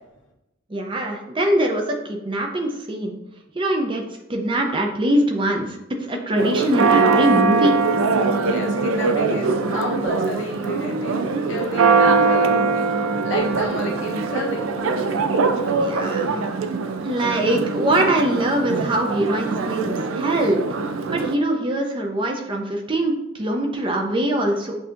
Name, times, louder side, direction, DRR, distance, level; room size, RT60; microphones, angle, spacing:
voice 1, 0.7-3.2 3.5-4.0 4.3-7.8 15.7-16.4 17.0-20.6 21.1-24.8, right 1 dB, 25° right, 2 dB, 0.5 m, -22 dB
Church bell, 6.4-21.3, right 4 dB, 80° right, 0.4 m, -22 dB
voice 2, 8.4-11.2 11.5-12.8 13.2-14.7, left 1 dB, 65° left, -1 dB, 1.0 m, -31 dB
7.7 x 2.8 x 2.5 m, 0.90 s
head